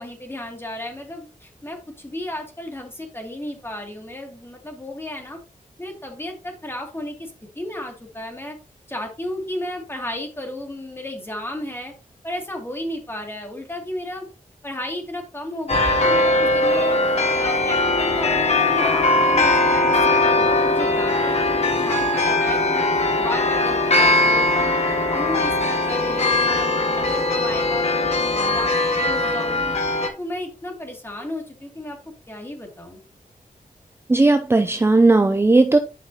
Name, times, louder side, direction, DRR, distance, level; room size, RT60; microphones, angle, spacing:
voice 1, 0.0-5.4 5.8-8.6 8.9-11.9 12.2-14.3 14.6-24.7 25.1-29.8 30.2-32.0 32.3-33.0, left 1 dB, 15° left, 2.6 m, -33 dB
sound 1, 15.7-30.1, left 2 dB, 50° left, 1.7 m, -20 dB
voice 2, 34.1-35.8, right 2 dB, 15° right, 0.5 m, -16 dB
11.0 x 5.8 x 2.9 m
wide cardioid pair, 120°, 14 cm